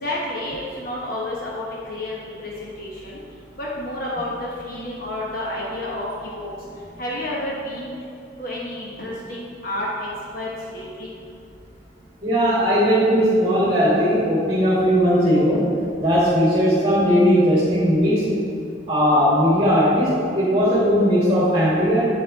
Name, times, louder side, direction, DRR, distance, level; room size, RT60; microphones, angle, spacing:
voice 1, 0.0-2.1 2.4-3.1 3.6-6.5 7.0-7.9 8.4-10.1 10.3-11.1, left 1 dB, 50° left, -5 dB, 1.1 m, -30 dB
voice 2, 12.2-15.7 16.0-18.4 18.9-22.1, equal, 30° right, -9 dB, 1.9 m, -18 dB
8.6 x 5.5 x 4.1 m, 2.5 s
head